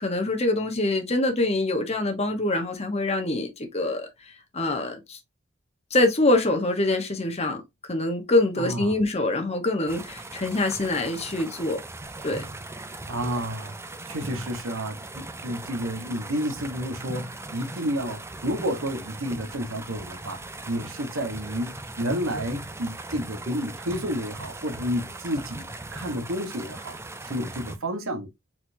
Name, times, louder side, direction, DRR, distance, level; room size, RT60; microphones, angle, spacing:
voice 1, 0.0-4.1 4.5-5.2 5.9-11.8 12.2-12.4, left 2 dB, 30° left, 1.2 m, -25 dB
voice 2, 8.6-9.0 13.1-13.8 14.1-20.4 20.7-28.3, equal, 75° right, 1.2 m, -31 dB
sound 1, 9.9-27.8, right 2 dB, 15° right, 0.5 m, -39 dB
4.5 x 4.2 x 2.7 m
head